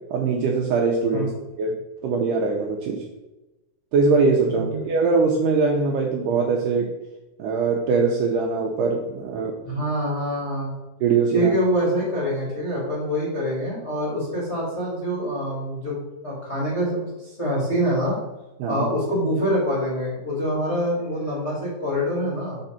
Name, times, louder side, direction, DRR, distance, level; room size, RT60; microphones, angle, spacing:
voice 1, 0.1-1.3 1.6-1.8 2.0-3.0 3.9-6.9 7.4-9.5 11.0-11.5 18.6-18.9, right 4 dB, 80° right, 0 dB, 1.9 m, -22 dB
voice 2, 4.5-4.8 9.6-10.7 11.3-18.1 18.7-22.6, equal, 30° left, -6 dB, 1.2 m, -25 dB
6.8 x 3.8 x 5.7 m, 1.0 s
omnidirectional pair, 4.4 m